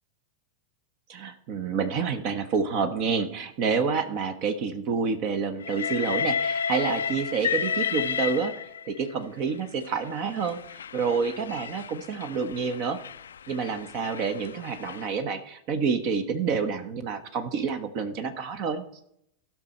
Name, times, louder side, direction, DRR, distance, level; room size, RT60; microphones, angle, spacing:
voice 1, 1.1-10.6 10.9-13.0 13.5-18.8, right 5 dB, 45° right, 10 dB, 1.1 m, -28 dB
Train, 5.6-9.0 9.9-15.1, left 7 dB, 65° left, 0.4 m, -32 dB
16.0 x 6.1 x 4.3 m, 0.74 s
figure-of-eight pair, 90°, 0 cm